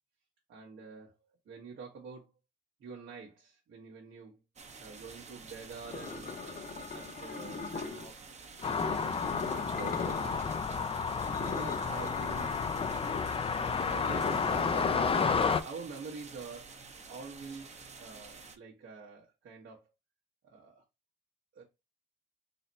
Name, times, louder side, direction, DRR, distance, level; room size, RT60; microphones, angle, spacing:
voice 1, 0.5-2.3 2.8-4.4 4.8-6.7 6.9-10.6 11.3-12.5 13.5-15.1 15.6-16.8 17.1-19.9 20.4-20.8 21.5-21.6, right 4 dB, 70° right, 1.2 m, -47 dB
sound 1, 4.6-18.6, right 4 dB, 35° right, 0.8 m, -50 dB
sound 2, 5.9-8.1 8.6-10.6 10.9-15.4, left 4 dB, 45° left, 1.0 m, -39 dB
sound 3, 8.6-15.6, left 5 dB, 30° left, 0.5 m, -31 dB
4.1 x 2.1 x 4.0 m
cardioid pair, 90°, 20 cm